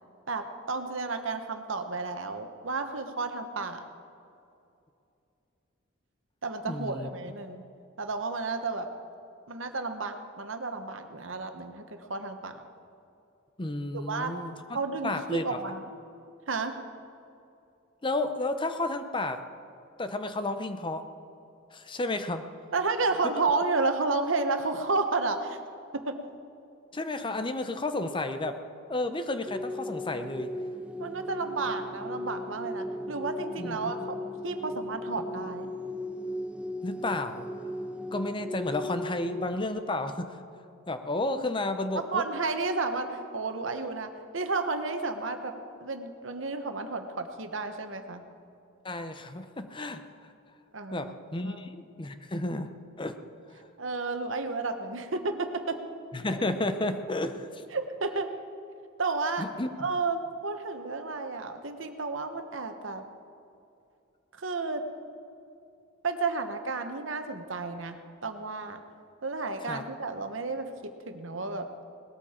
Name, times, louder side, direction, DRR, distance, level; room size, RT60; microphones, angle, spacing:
voice 1, 0.3-3.8 6.4-7.6 8.0-8.9 9.5-12.6 13.9-14.3 14.7-15.8 16.5-16.7 22.7-25.6 26.1-26.2 31.0-34.2 34.4-35.7 42.1-45.5 45.8-48.2 50.7-51.1 51.4-51.6 53.8-55.8 57.7-58.3 59.0-59.4 59.8-63.0 64.4-64.8 66.0-68.8 69.2-71.7, right 3 dB, 70° right, 7 dB, 1.2 m, -32 dB
voice 2, 6.6-7.1 13.6-14.5 15.0-15.6 18.0-19.4 20.0-21.0 21.7-22.5 26.9-28.6 28.9-30.5 33.6-34.1 36.8-37.5 38.1-40.4 40.9-42.2 48.8-50.3 50.9-52.7 53.0-53.2 56.1-57.6 59.4-59.7 69.6-69.8, left 2 dB, 25° left, 9 dB, 0.7 m, -32 dB
sound 1, 29.5-39.7, left 1 dB, 5° right, 0.4 m, -37 dB
19.0 x 13.5 x 4.4 m, 2.7 s
head